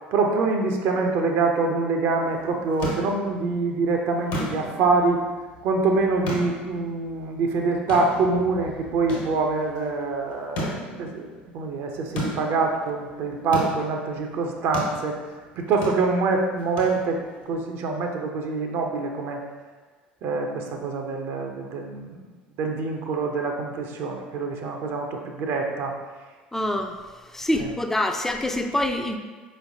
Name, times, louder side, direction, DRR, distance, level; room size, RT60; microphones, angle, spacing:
voice 1, 0.1-5.2 5.6-11.3 11.5-15.2 15.6-17.2 17.4-19.4 20.2-22.2 22.6-25.9 27.6-27.7, right 3 dB, 50° right, 2 dB, 0.5 m, -25 dB
sound 1, 2.3-17.4, left 1 dB, 65° left, 1.1 m, -36 dB
voice 2, 26.5-27.0 27.3-29.2, left 1 dB, 5° left, 5 dB, 0.4 m, -25 dB
4.7 x 3.1 x 2.7 m, 1.3 s
figure-of-eight pair, 65°, 5 cm